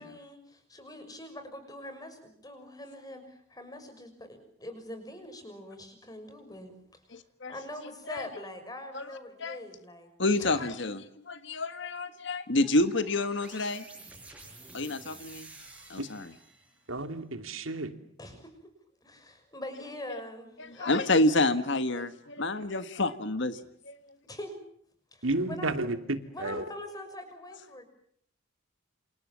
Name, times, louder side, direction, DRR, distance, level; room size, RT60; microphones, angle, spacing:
voice 1, 0.0-7.2 7.5-10.1 10.4-10.7 18.2-18.5 19.0-21.0 24.2-24.6 25.1-25.7 26.3-27.9, left 1 dB, 20° left, 8 dB, 6.2 m, -43 dB
voice 2, 7.1-7.5 8.1-8.2 8.9-9.0 9.4-9.6 10.2-13.8 14.7-15.5 15.9-16.3 20.6-23.9, left 2 dB, 60° left, 11 dB, 1.5 m, -28 dB
sound 1, 12.6-16.9, right 2 dB, 5° right, 7.3 m, -50 dB
voice 3, 16.9-17.9 25.2-26.6, right 2 dB, 75° right, 8 dB, 2.8 m, -32 dB
28.5 x 28.5 x 7.4 m, 0.65 s
head